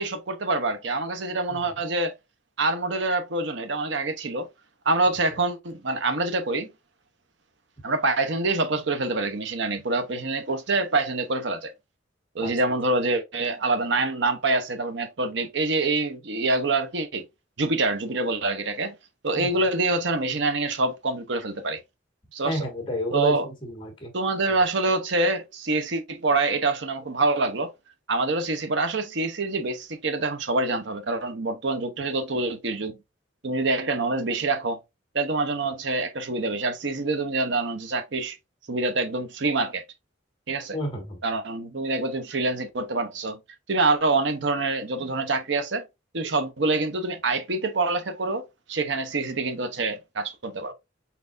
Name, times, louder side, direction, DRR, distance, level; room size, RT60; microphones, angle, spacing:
voice 1, 0.0-2.1 2.6-4.5 4.9-6.7 7.8-11.7 12.3-17.2 17.6-18.9 19.2-21.8 22.3-22.7 23.1-23.5 24.1-27.7 28.1-33.0 33.4-34.8 35.1-38.4 38.7-39.8 40.5-40.8 41.2-43.4 43.7-45.9 46.1-50.7, right 3 dB, 65° right, 0.8 m, -26 dB
voice 2, 22.4-24.1 24.5-24.6 40.7-41.2, equal, 25° left, 1.7 m, -30 dB
4.2 x 4.1 x 2.5 m
head